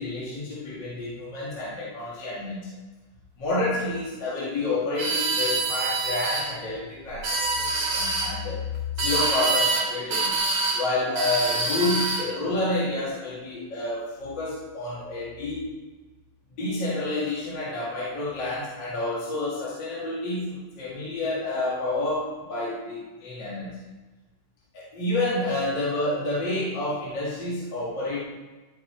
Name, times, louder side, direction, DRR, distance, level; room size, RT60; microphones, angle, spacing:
voice 1, 0.0-2.8 3.4-8.6 8.9-10.3 10.7-15.7 16.5-23.8 24.7-28.2, left 2 dB, 35° left, -8 dB, 3.1 m, -29 dB
sound 1, 5.0-6.5 7.1-8.3 9.0-9.9 10.1-10.8 11.2-12.3, right 3 dB, 50° right, 2.9 m, -25 dB
13.5 x 5.8 x 4.8 m, 1.2 s
omnidirectional pair, 3.4 m